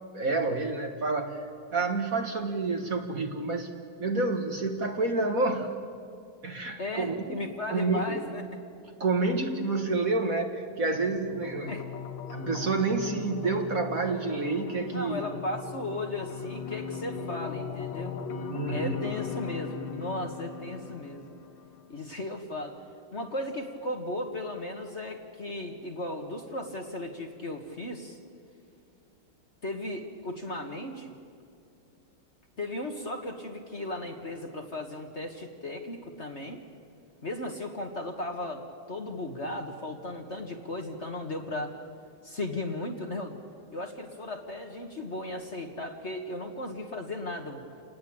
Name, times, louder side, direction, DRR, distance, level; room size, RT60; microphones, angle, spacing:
voice 1, 0.1-1.5 1.7-3.7 4.0-5.7 6.4-7.4 7.7-8.2 9.0-11.7 12.3-15.2 18.5-19.0, right 3 dB, 45° right, 4 dB, 1.7 m, -29 dB
voice 2, 6.8-8.6 11.7-11.8 14.9-18.2 18.7-21.3 21.9-22.8 23.1-28.2 29.6-31.2 32.6-36.6 37.2-41.7 42.2-43.3 43.7-47.6, left 1 dB, 35° left, 3 dB, 1.7 m, -36 dB
sound 1, 10.9-21.9, left 6 dB, 65° left, 2.1 m, -39 dB
29.0 x 19.5 x 8.7 m, 2.4 s
omnidirectional pair, 2.3 m